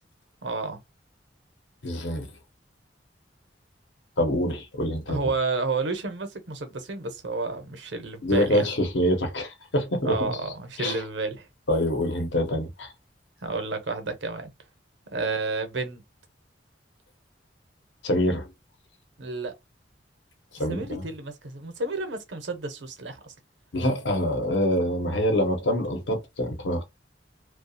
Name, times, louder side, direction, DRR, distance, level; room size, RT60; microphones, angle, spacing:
voice 1, 0.4-0.8 5.1-8.7 10.0-11.5 13.4-14.5 15.1-16.0 19.2-19.5 20.7-23.3, right 3 dB, 75° right, 0.8 m, -31 dB
voice 2, 1.8-2.3 4.2-5.2 8.2-10.3 10.8-11.0 11.7-12.9 18.0-18.5 20.6-21.0 23.7-26.8, equal, 75° left, 0.9 m, -25 dB
2.4 x 2.2 x 2.6 m
head